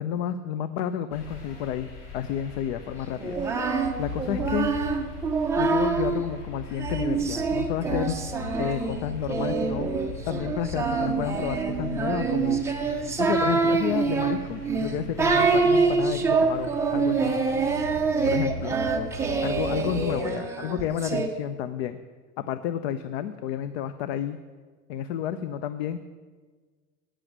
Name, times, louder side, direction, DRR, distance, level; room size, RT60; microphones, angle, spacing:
voice 1, 0.0-4.7 5.6-8.2 8.6-9.9 10.3-12.6 13.2-17.3 18.3-18.7 19.4-22.0 22.4-24.4 24.9-26.0, left 9 dB, 45° left, 12 dB, 0.5 m, -31 dB
sound 1, 1.1-20.2, left 2 dB, 70° left, 3.2 m, -39 dB
Singing, 3.2-6.2 6.8-21.3, right 4 dB, 5° right, 0.5 m, -25 dB
9.6 x 6.2 x 7.8 m, 1.5 s
hypercardioid pair, 115°, 48 cm